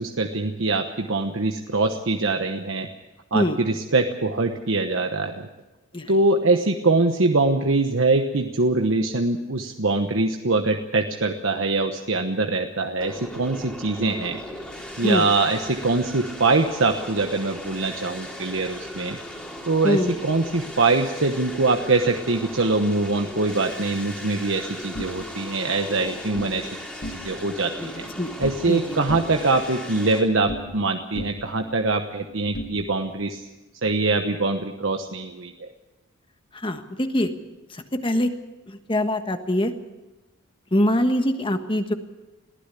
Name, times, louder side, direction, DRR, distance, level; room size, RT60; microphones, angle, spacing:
voice 1, 0.0-2.9 3.3-5.5 6.1-14.4 15.0-19.2 19.7-26.7 27.2-28.1 28.4-33.4 33.8-35.7, right 3 dB, 70° right, 5 dB, 1.1 m, -23 dB
sound 1, 13.0-30.2, equal, 5° left, 3.1 m, -38 dB
sound 2, 24.9-26.6 26.9-27.6 27.8-28.8 29.1-30.9 31.2-33.3, equal, 50° left, 1.9 m, -38 dB
voice 2, 27.8-28.3 28.7-29.0 36.5-37.3 37.7-38.3 38.7-39.7 40.7-41.9, left 1 dB, 25° left, 7 dB, 1.4 m, -23 dB
21.5 x 15.5 x 8.3 m, 1.1 s
head